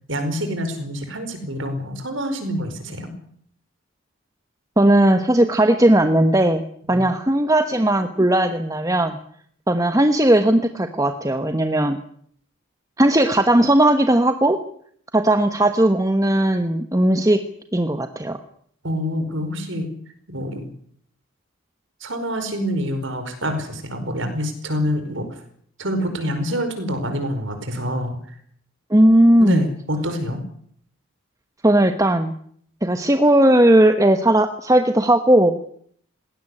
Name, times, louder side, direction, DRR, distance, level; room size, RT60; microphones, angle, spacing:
voice 1, 0.1-3.1 6.9-7.0 18.8-19.9 20.3-20.7 22.0-25.3 25.8-28.2 29.4-30.4, equal, 60° right, 7 dB, 5.0 m, -26 dB
voice 2, 4.8-9.2 9.7-12.0 13.0-14.6 15.1-17.4 17.7-18.4 28.9-29.6 31.6-32.3 32.8-35.6, right 1 dB, 15° right, 8 dB, 1.1 m, -17 dB
19.5 x 17.5 x 9.8 m, 0.64 s
head